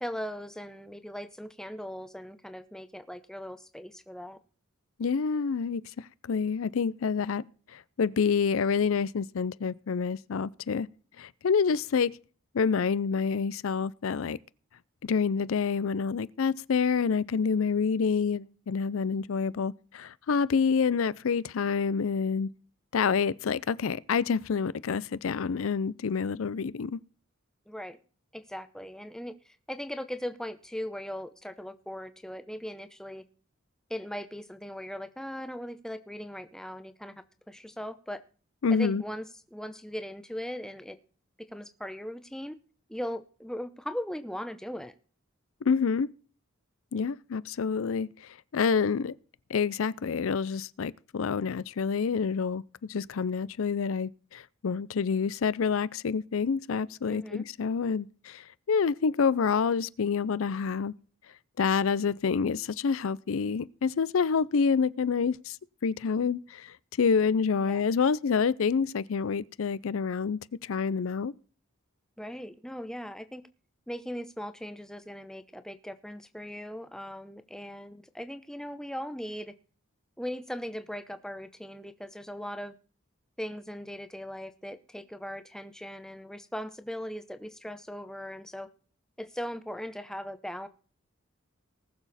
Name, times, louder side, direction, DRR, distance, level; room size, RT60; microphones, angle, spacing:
voice 1, 0.0-4.4 27.7-28.0 28.3-33.2 33.9-37.1 37.5-38.2 38.7-41.0 41.5-42.6 42.9-44.9 57.1-57.5 67.6-67.8 72.2-73.4 73.9-79.5 80.2-82.8 83.4-88.7 89.2-90.7, equal, 5° left, 0.7 m, -39 dB
voice 2, 5.0-7.4 7.7-10.9 11.2-12.2 12.5-14.4 15.0-22.5 22.9-27.0 38.6-39.0 45.7-46.1 46.9-49.1 49.5-52.6 52.9-60.9 61.6-65.6 65.8-71.3, left 5 dB, 75° left, 0.4 m, -28 dB
19.5 x 7.0 x 4.1 m
head